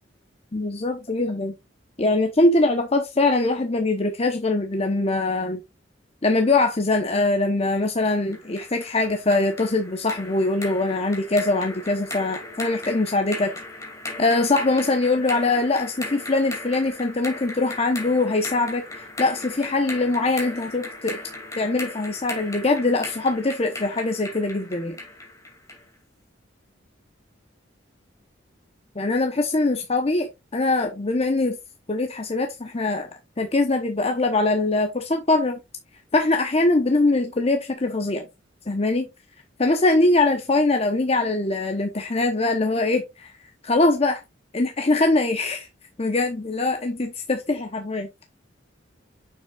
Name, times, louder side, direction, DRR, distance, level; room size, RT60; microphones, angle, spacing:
voice 1, 0.5-1.5 2.0-5.6 6.2-13.5 14.2-21.2 21.6-25.0 28.9-31.6 31.9-33.1 33.4-35.6 36.1-38.3 38.7-39.1 39.6-43.3 43.6-44.2 44.5-45.7 46.0-48.2, left 2 dB, 35° left, 0.9 m, -22 dB
sound 1, 8.1-25.9, left 2 dB, 15° left, 2.5 m, -37 dB
7.1 x 6.2 x 2.4 m
head